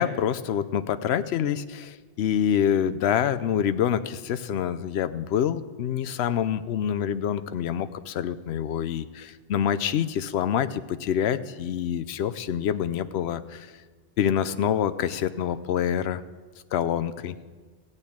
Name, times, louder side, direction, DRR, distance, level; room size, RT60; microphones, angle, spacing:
voice 1, 0.0-13.7 14.2-16.2 16.7-17.3, left 9 dB, 75° left, 12 dB, 0.9 m, -26 dB
15.5 x 6.6 x 8.6 m, 1.5 s
omnidirectional pair, 1.1 m